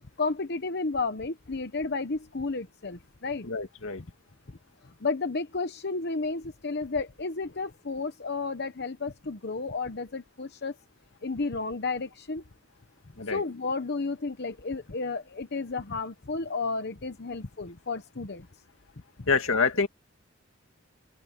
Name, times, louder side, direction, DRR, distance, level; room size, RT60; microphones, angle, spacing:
voice 1, 0.2-3.5 5.0-10.7 11.2-12.4 13.3-18.5, left 3 dB, 55° left, 1.0 m, -32 dB
voice 2, 3.4-4.0 13.2-13.4 19.3-19.9, left 4 dB, 80° left, 2.1 m, -26 dB
open air
head